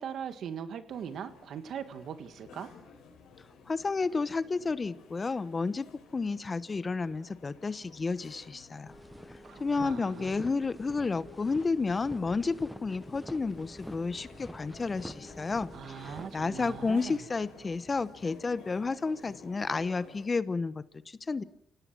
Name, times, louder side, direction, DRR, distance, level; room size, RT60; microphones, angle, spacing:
voice 1, 0.0-2.7 9.4-10.5 15.7-17.2, right 8 dB, 65° right, 10 dB, 1.8 m, -40 dB
sound 1, 0.9-20.3, left 5 dB, 80° left, 6.9 m, -54 dB
voice 2, 3.7-5.9 6.1-8.9 9.6-21.4, left 4 dB, 30° left, 15 dB, 1.0 m, -31 dB
sound 2, 8.9-17.2, equal, ahead, 1.2 m, -47 dB
29.5 x 17.5 x 6.1 m, 0.74 s
cardioid pair, 90°, 0 cm